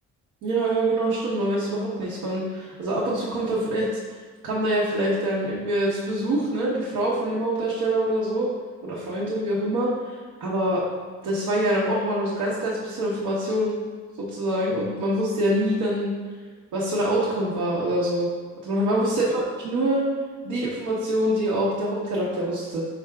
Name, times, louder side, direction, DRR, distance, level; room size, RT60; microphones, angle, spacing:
voice 1, 0.4-4.2 4.4-8.5 8.8-10.8 11.2-13.8 14.2-16.1 16.7-18.3 18.6-20.0 20.4-22.9, right 1 dB, 85° right, -6 dB, 0.9 m, -25 dB
4.2 x 2.3 x 4.6 m, 1.5 s
cardioid pair, 90°, 30 cm